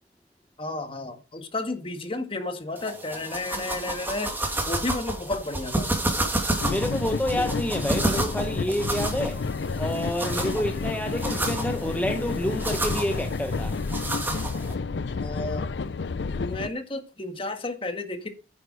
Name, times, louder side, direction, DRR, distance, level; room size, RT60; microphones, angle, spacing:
voice 1, 0.6-5.9 7.4-7.5 15.2-15.7 16.3-18.3, left 2 dB, 30° left, 1.7 m, -32 dB
sound 1, 2.8-14.7, right 1 dB, 10° right, 2.3 m, -31 dB
sound 2, 6.6-16.7, left 4 dB, 75° left, 0.5 m, -30 dB
voice 2, 6.7-9.4 9.7-13.8, equal, 10° left, 0.8 m, -28 dB
9.6 x 8.0 x 4.8 m
head